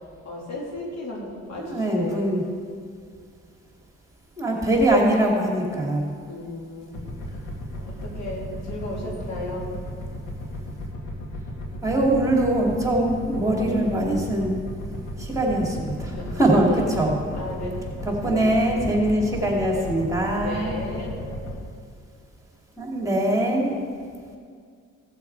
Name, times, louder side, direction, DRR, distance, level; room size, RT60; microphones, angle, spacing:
voice 1, 0.2-2.3 4.5-4.8 6.3-7.4 7.8-9.7 16.0-18.5 20.3-21.2, left 2 dB, 65° left, -3 dB, 3.0 m, -35 dB
voice 2, 1.6-2.4 4.4-6.1 11.8-14.6 15.2-17.2 18.0-20.7 22.8-23.7, right 1 dB, 10° right, -1 dB, 2.7 m, -22 dB
sound 1, 6.9-21.6, equal, 90° left, 2.2 m, -35 dB
16.5 x 7.1 x 4.7 m, 2.1 s
cardioid pair, 90°, 30 cm